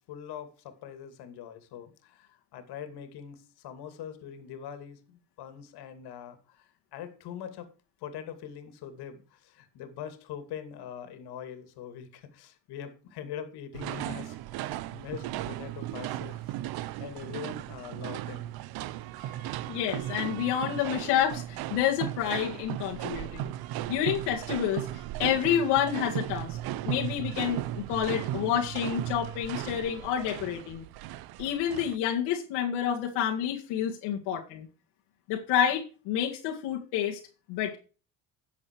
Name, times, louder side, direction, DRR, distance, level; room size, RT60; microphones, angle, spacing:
voice 1, 0.0-7.7 8.0-16.5 17.0-18.5, left 9 dB, 70° left, 9 dB, 2.5 m, -43 dB
sound 1, 13.7-32.0, right 14 dB, 65° right, 0.7 m, -36 dB
voice 2, 19.7-23.5 23.9-24.9 25.2-26.6 26.8-30.8 31.4-34.7 35.3-37.2 37.5-37.8, left 9 dB, 90° left, -2 dB, 2.1 m, -29 dB
12.0 x 7.4 x 4.7 m, 0.35 s
cardioid pair, 110°, 40 cm